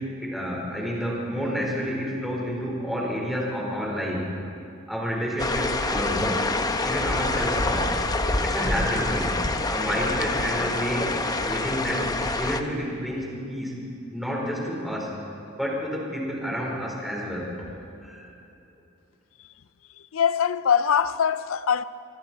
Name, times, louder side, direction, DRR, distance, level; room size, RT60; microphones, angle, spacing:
voice 1, 0.0-4.3 4.9-6.4 6.8-8.0 8.4-9.3 9.7-12.0 12.4-13.8 14.1-15.1 15.6-18.3, equal, ahead, 4.8 m, -29 dB
sound 1, 5.4-12.6, left 2 dB, 20° left, 0.9 m, -26 dB
voice 2, 20.1-21.8, left 7 dB, 80° left, 0.5 m, -22 dB
25.0 x 24.5 x 4.5 m
head